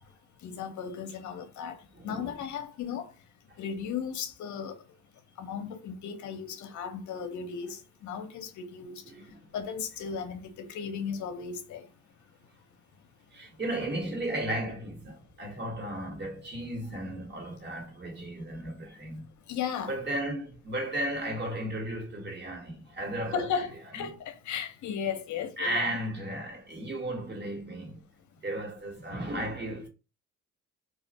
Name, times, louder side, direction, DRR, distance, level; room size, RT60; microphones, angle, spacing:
voice 1, 0.4-3.1 3.6-4.8 5.4-9.0 9.5-11.9 19.5-20.0 23.3-25.9, left 7 dB, 70° left, 0.7 m, -35 dB
voice 2, 2.0-2.3 9.1-9.4 13.3-19.2 19.9-23.5 24.0-24.1 25.6-28.0 28.4-29.9, right 1 dB, 35° right, 1.3 m, -34 dB
2.4 x 2.4 x 4.1 m
cardioid pair, 90°, 30 cm